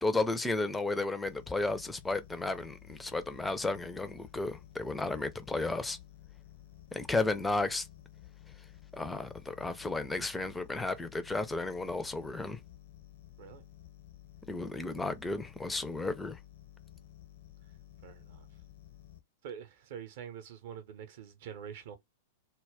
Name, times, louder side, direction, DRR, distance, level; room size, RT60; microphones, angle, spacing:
voice 1, 0.0-6.0 6.9-7.9 8.9-12.6 14.5-16.4, left 2 dB, 10° left, 0.4 m, -33 dB
sound 1, 1.3-19.2, left 13 dB, 55° left, 0.6 m, -54 dB
voice 2, 18.0-18.5 19.4-22.0, right 8 dB, 50° right, 0.6 m, -45 dB
2.2 x 2.1 x 3.4 m
figure-of-eight pair, 100°, 0 cm